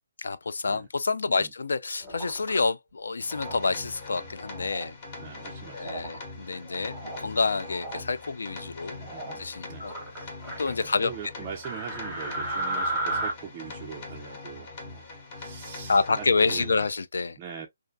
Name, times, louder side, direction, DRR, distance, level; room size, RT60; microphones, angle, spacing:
voice 1, 0.2-5.0 5.7-9.0 9.4-10.3 10.6-11.1 15.9-17.4, left 4 dB, 75° left, 0.3 m, -28 dB
sound 1, 2.0-2.6 3.3-3.6 4.4-4.9 5.8-6.2 6.7-7.2 7.6-8.0 9.0-9.4 9.8-10.7 11.6-13.3, right 2 dB, ahead, 1.0 m, -34 dB
sound 2, 3.2-16.9, left 3 dB, 35° left, 1.0 m, -42 dB
voice 2, 5.2-6.6 8.9-9.4 9.7-9.9 10.8-16.8 17.4-17.7, right 7 dB, 25° right, 0.3 m, -42 dB
2.4 x 2.1 x 2.5 m
hypercardioid pair, 160°, 0 cm